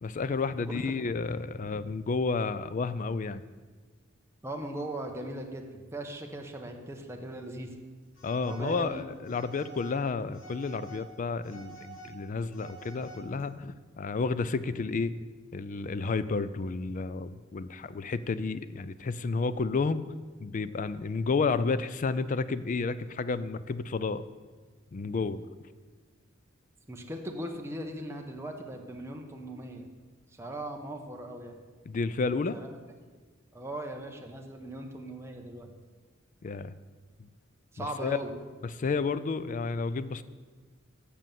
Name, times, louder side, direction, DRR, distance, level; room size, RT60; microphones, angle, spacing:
voice 1, 0.0-3.4 8.2-15.2 15.5-20.0 20.4-24.2 24.9-25.4 31.9-32.6 36.4-36.7 37.8-38.2 38.8-40.2, left 4 dB, 40° left, 15 dB, 0.4 m, -31 dB
voice 2, 4.4-7.8 8.4-9.0 26.9-29.9 30.3-31.6 32.5-32.7 33.5-35.7 37.7-38.3, right 1 dB, 15° right, 2 dB, 0.9 m, -39 dB
Telephone, 8.1-8.9 9.2-10.0 10.3-11.0 11.4-13.4, right 3 dB, 80° left, 3.4 m, -49 dB
7.5 x 6.8 x 7.4 m, 1.4 s
head